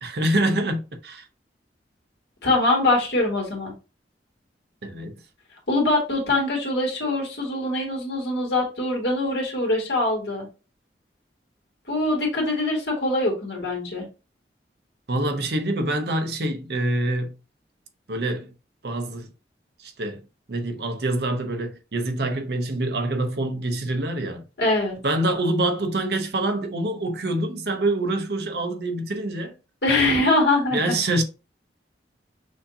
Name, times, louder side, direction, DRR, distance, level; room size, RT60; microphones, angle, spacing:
voice 1, 0.0-1.2 4.8-5.2 15.1-17.4 18.1-18.5 18.8-19.3 19.8-20.2 20.5-24.4 25.0-29.5 30.7-31.2, right 1 dB, 65° right, 0.7 m, -25 dB
voice 2, 2.4-3.7 5.7-10.5 11.9-14.0 24.6-25.0 29.8-31.0, left 2 dB, 75° left, 1.9 m, -23 dB
6.2 x 2.7 x 2.7 m
head